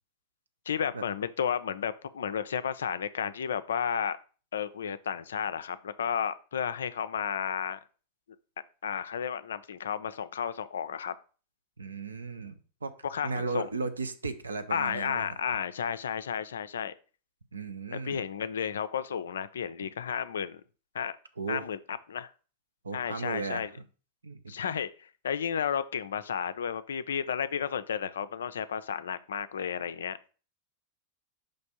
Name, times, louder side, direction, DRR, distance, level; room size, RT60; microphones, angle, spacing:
voice 1, 0.7-4.2 4.5-7.8 8.8-11.1 13.0-13.7 14.7-16.9 17.9-20.6 20.9-21.2 21.5-21.8 22.1-22.3 22.9-23.7 24.5-30.2, left 7 dB, 65° left, 13 dB, 0.4 m, -32 dB
voice 2, 11.8-12.9 13.2-15.4 17.5-18.2 21.4-21.6 22.8-23.7 24.2-24.8, right 3 dB, 75° right, 11 dB, 0.6 m, -36 dB
5.2 x 3.4 x 5.6 m, 0.37 s
figure-of-eight pair, 90°, 0 cm